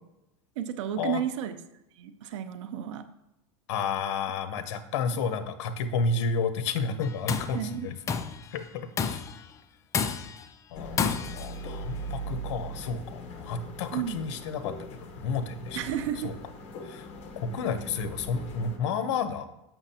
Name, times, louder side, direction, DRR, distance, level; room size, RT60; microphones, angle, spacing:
voice 1, 0.6-1.6 2.0-3.1 5.0-5.2 7.5-7.9 13.9-14.2 15.7-16.4, right 10 dB, 80° right, 11 dB, 0.6 m, -32 dB
voice 2, 3.7-7.9 8.5-8.7 9.0-9.2 10.7-15.8 16.2-16.3 16.8-17.1 17.4-19.5, left 5 dB, 75° left, 10 dB, 0.7 m, -31 dB
Tools, 7.0-7.6 8.1-8.4 9.0-9.4 9.9-10.5 11.0-11.5, left 6 dB, 20° left, 0.3 m, -29 dB
sound 1, 10.7-18.8, right 1 dB, 40° left, 1.0 m, -40 dB
6.9 x 5.8 x 2.8 m, 0.88 s
supercardioid pair, 135°, 16 cm